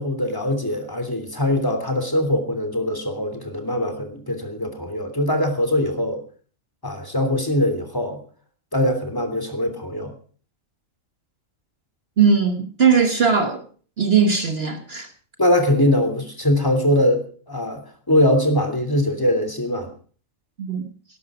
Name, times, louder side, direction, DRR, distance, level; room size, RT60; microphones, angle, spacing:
voice 1, 0.0-6.2 6.8-8.2 8.7-10.1 15.4-17.8 18.1-19.9, left 1 dB, 15° left, 5 dB, 3.0 m, -22 dB
voice 2, 12.2-13.6 14.0-15.1 20.6-20.8, right 6 dB, 50° right, 6 dB, 1.5 m, -19 dB
17.5 x 12.0 x 4.9 m, 0.43 s
omnidirectional pair, 1.4 m